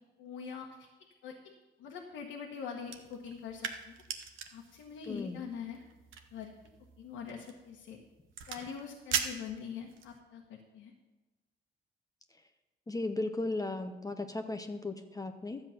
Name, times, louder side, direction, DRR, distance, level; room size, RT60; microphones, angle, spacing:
voice 1, 0.2-0.9 1.2-1.5 1.8-3.9 4.5-5.8 6.3-6.5 7.0-8.0 8.5-10.9, left 6 dB, 90° left, -1 dB, 1.4 m, -43 dB
sound 1, 2.8-10.2, right 7 dB, 80° right, 1.1 m, -41 dB
voice 2, 5.1-5.4 12.9-15.6, left 2 dB, 15° left, 7 dB, 0.8 m, -36 dB
12.0 x 8.0 x 5.8 m, 1.1 s
cardioid pair, 90°, 20 cm